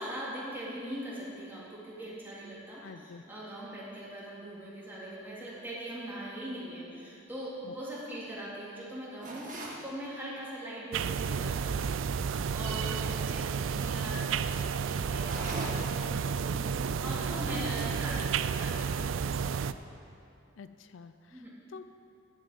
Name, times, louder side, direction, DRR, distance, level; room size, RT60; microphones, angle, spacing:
voice 1, 0.0-12.0 12.5-19.4 21.3-21.5, equal, 10° right, -8 dB, 3.1 m, -41 dB
voice 2, 2.8-3.2 7.6-7.7 20.6-21.8, left 5 dB, 75° left, 11 dB, 0.4 m, -48 dB
sound 1, 9.2-9.9 15.1-16.0, right 1 dB, 45° right, 1.6 m, -39 dB
sound 2, 10.9-19.7, right 6 dB, 90° right, 0.4 m, -31 dB
11.0 x 7.5 x 7.7 m, 2.6 s
head